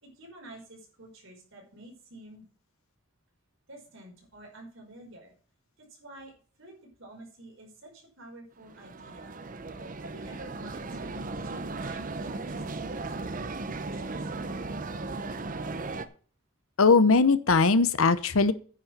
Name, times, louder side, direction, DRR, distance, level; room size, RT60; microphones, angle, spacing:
voice 1, 0.0-2.4 3.7-5.3 5.8-6.3 6.6-6.7 7.0-9.4 10.0-11.1 11.4-14.5, right 1 dB, 60° right, 1 dB, 5.0 m, -49 dB
sound 1, 8.6-16.1, right 3 dB, 40° right, 0.8 m, -36 dB
voice 2, 16.8-18.5, left 4 dB, 80° left, 14 dB, 0.9 m, -20 dB
10.0 x 6.7 x 6.0 m, 0.42 s
head